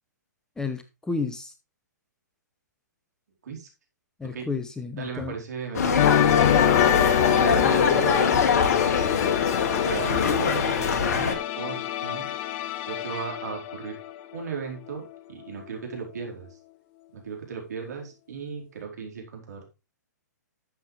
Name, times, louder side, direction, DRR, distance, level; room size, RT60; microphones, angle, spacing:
voice 1, 0.6-1.5 4.2-5.4, left 4 dB, 5° left, 9 dB, 0.9 m, -31 dB
voice 2, 4.9-6.6 7.2-8.5 9.7-12.3 12.9-14.0 14.3-15.0 15.3-16.5 17.1-19.8, right 5 dB, 60° right, 1 dB, 4.5 m, -36 dB
sound 1, 5.7-11.3, left 5 dB, 55° left, 1.9 m, -23 dB
sound 2, 6.0-14.6 14.9-15.1, left 12 dB, 35° left, 0.8 m, -26 dB
12.0 x 7.6 x 3.3 m, 0.26 s
figure-of-eight pair, 120°, 10 cm